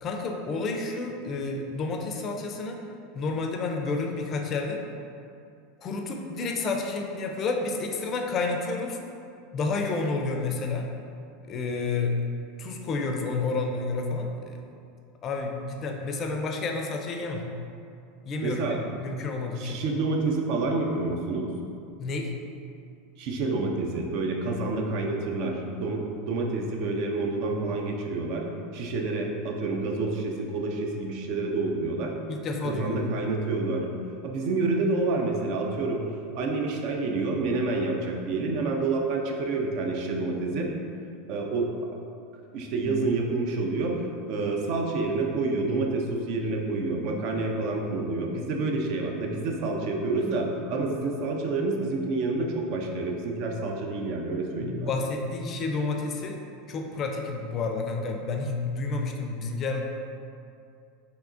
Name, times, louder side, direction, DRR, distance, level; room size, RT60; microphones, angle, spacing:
voice 1, 0.0-2.8 3.1-4.8 5.8-9.0 9.5-10.9 11.5-12.2 12.6-14.6 15.2-17.5 18.3-18.6 19.0-19.8 22.0-22.3 32.3-33.1 54.6-56.4 56.7-59.8, left 3 dB, 40° left, 2 dB, 0.4 m, -30 dB
voice 2, 18.4-18.8 19.6-21.5 23.2-26.0 26.3-28.5 28.7-32.1 32.6-33.8 34.2-36.0 36.3-40.7 41.3-41.8 42.5-44.0 44.3-55.1, right 3 dB, 60° right, 1 dB, 0.4 m, -28 dB
3.5 x 2.9 x 2.5 m, 2.5 s
hypercardioid pair, 100°, 0 cm